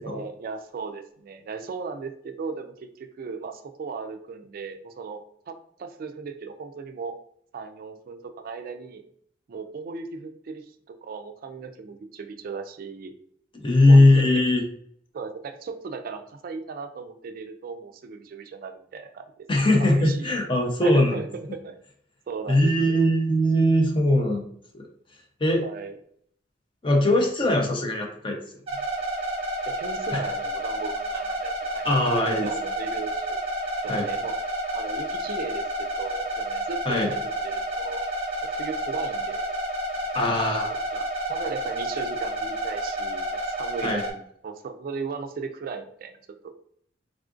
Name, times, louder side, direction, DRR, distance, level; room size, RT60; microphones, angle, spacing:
voice 1, 0.0-7.2 7.5-9.0 9.5-10.6 10.9-13.1 13.9-14.4 15.1-19.5 19.8-20.3 20.8-21.8 22.3-23.1 25.6-26.0 29.7-31.9 32.2-33.4 33.8-34.3 34.7-37.0 37.4-38.0 38.5-39.4 40.9-46.1, right 4 dB, 50° right, 6 dB, 0.3 m, -37 dB
voice 2, 13.5-14.6 19.5-21.2 22.5-24.4 24.7-24.9 25.4-25.6 26.8-28.4 30.1-30.2 31.8-32.5 33.9-34.1 36.9-37.1 40.1-40.8 43.8-44.0, left 1 dB, 30° left, 2 dB, 0.6 m, -20 dB
sound 1, 28.7-44.1, right 1 dB, 30° right, 0.8 m, -30 dB
3.6 x 2.4 x 2.4 m, 0.64 s
head